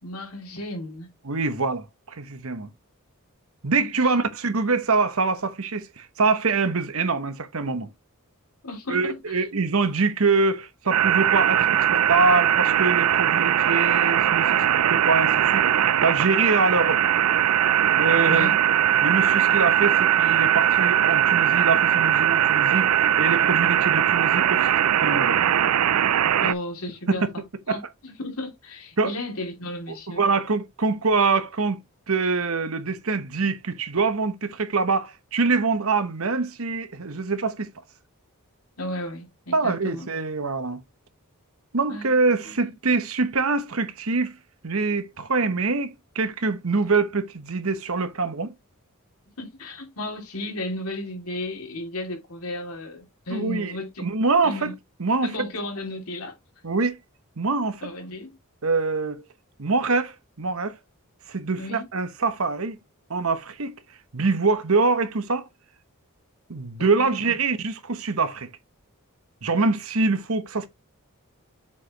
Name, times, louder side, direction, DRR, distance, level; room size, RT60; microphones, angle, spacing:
voice 1, 0.0-1.1 3.8-4.2 8.6-9.5 18.3-18.6 26.4-27.4 27.7-30.2 38.8-40.1 41.9-42.1 42.4-42.7 49.4-54.0 54.4-54.7 55.2-56.3 57.8-58.4 61.6-61.9 66.8-67.3, left 1 dB, 80° left, 2.8 m, -34 dB
voice 2, 1.2-2.7 3.6-7.9 8.9-17.0 17.9-18.6 19.0-24.7 25.0-25.4 27.1-27.2 27.7-27.8 29.0-29.1 29.9-31.8 32.1-37.7 39.5-40.8 41.7-44.4 44.6-48.5 53.3-54.7 55.0-55.5 56.6-57.0 57.4-57.9 58.6-59.2 59.6-60.8 61.3-62.8 63.1-63.7 64.1-65.5 66.5-68.5 69.4-70.7, right 4 dB, 65° right, 1.1 m, -24 dB
sound 1, 10.9-26.5, right 10 dB, 80° right, 0.5 m, -20 dB
7.1 x 4.9 x 3.0 m
head